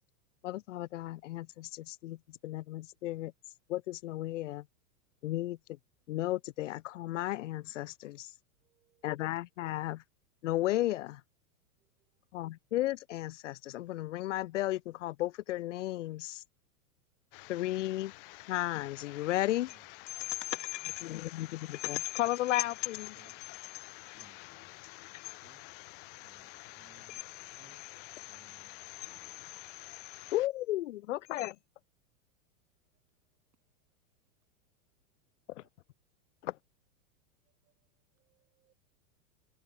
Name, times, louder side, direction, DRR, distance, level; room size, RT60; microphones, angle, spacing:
voice 1, 0.4-2.2 2.4-3.3 3.7-4.6 5.2-5.6 6.1-8.3 9.0-10.0 10.4-11.2 12.3-16.4 17.5-18.1 18.5-19.7 20.3-23.1 30.3-31.6 35.6-35.7 36.4-36.5, left 16 dB, 55° left, 0.6 m, -34 dB
voice 2, 8.6-9.2 11.8-11.9 35.6-35.7 38.2-38.7, right 11 dB, 90° right, 5.0 m, -75 dB
sound 1, 17.3-30.5, left 27 dB, 35° left, 4.2 m, -51 dB
voice 3, 19.7-20.3 23.0-23.7 24.1-30.0, right 11 dB, 15° right, 4.1 m, -67 dB
supercardioid pair, 175°, 45 cm